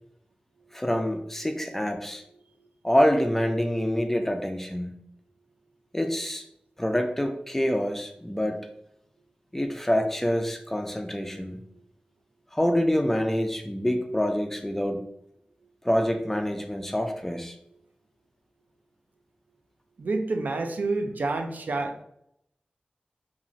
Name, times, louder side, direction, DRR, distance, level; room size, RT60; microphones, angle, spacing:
voice 1, 0.7-2.2 2.8-5.0 5.9-6.4 6.8-8.6 9.5-11.6 12.5-15.0 15.8-17.6, equal, 10° left, 5 dB, 0.3 m, -26 dB
voice 2, 20.0-22.0, right 3 dB, 70° right, 5 dB, 0.3 m, -28 dB
2.9 x 2.4 x 2.5 m, 0.75 s
wide cardioid pair, 90°, 3 cm